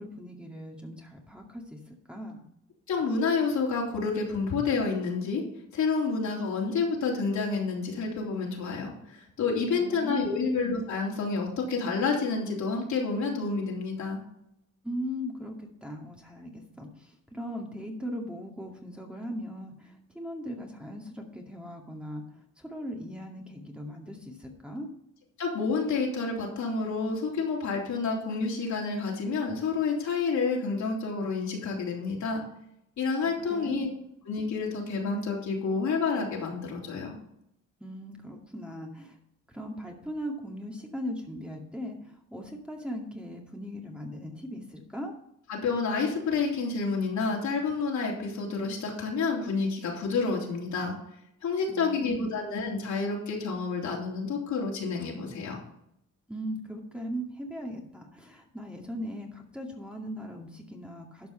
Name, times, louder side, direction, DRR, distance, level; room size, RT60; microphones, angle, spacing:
voice 1, 0.0-2.4 9.7-10.5 14.8-22.2 22.6-24.9 33.2-33.9 37.8-39.2 39.5-45.1 51.7-52.4 56.3-61.3, equal, 5° right, 0 dB, 2.2 m, -39 dB
voice 2, 2.9-5.4 5.7-14.2 25.4-32.4 33.0-33.9 34.3-37.2 45.5-50.9 51.4-55.6, left 4 dB, 70° left, -2 dB, 3.5 m, -29 dB
12.0 x 5.5 x 5.6 m, 0.76 s
cardioid pair, 90°, 30 cm